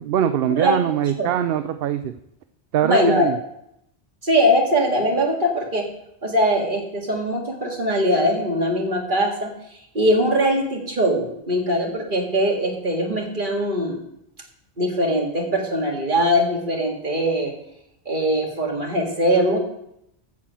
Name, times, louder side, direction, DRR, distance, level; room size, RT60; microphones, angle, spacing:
voice 1, 0.0-2.1 2.7-3.4, right 10 dB, 65° right, 9 dB, 0.7 m, -22 dB
voice 2, 2.8-3.3 4.2-5.8 6.2-9.5 9.9-14.0 14.8-17.5 18.1-19.6, equal, 45° right, 0 dB, 2.1 m, -21 dB
8.4 x 7.4 x 7.5 m, 0.80 s
omnidirectional pair, 1.1 m